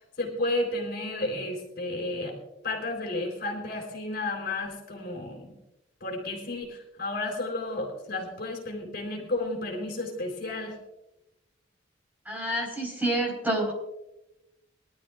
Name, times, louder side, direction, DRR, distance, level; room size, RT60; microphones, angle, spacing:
voice 1, 0.2-2.3 2.6-5.5 6.0-10.7, left 2 dB, 50° left, 1 dB, 3.8 m, -32 dB
voice 2, 12.2-13.7, right 1 dB, 10° right, -1 dB, 4.4 m, -28 dB
23.5 x 12.5 x 2.5 m, 0.94 s
head